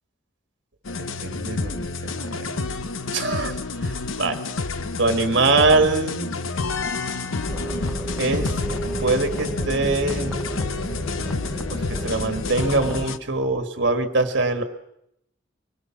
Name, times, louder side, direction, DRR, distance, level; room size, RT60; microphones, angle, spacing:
sound 1, 0.8-13.2, left 3 dB, 85° left, 0.9 m, -29 dB
voice 1, 1.2-2.6 3.1-4.4 5.0-6.3 8.2-8.5 9.0-10.4 11.7-14.6, right 3 dB, 55° right, 7 dB, 1.8 m, -23 dB
sound 2, 7.5-13.1, right 1 dB, 5° left, 0.9 m, -31 dB
23.5 x 20.5 x 6.0 m, 0.80 s
head